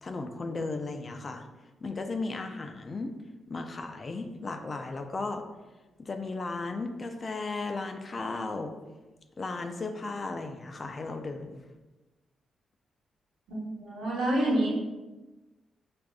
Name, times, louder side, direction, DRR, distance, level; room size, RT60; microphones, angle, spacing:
voice 1, 0.0-1.5 1.8-3.1 3.5-5.4 6.0-8.7 9.4-11.6, left 3 dB, 45° left, 5 dB, 0.4 m, -35 dB
voice 2, 13.5-14.7, right 1 dB, 85° right, -5 dB, 1.0 m, -28 dB
4.7 x 2.5 x 2.3 m, 1.1 s
cardioid pair, 65°, 0 cm